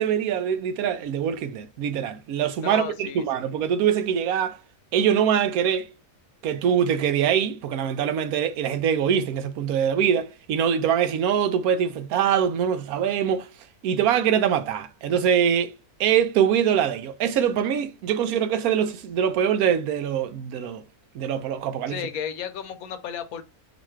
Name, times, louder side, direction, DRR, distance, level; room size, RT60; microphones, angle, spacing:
voice 1, 0.0-4.6 4.9-5.9 6.4-13.5 13.8-15.7 16.0-20.8 21.1-22.0, right 8 dB, 80° right, 1.1 m, -23 dB
voice 2, 2.6-3.5 21.9-23.4, left 8 dB, 80° left, 1.1 m, -33 dB
4.0 x 2.5 x 4.5 m
omnidirectional pair, 1.5 m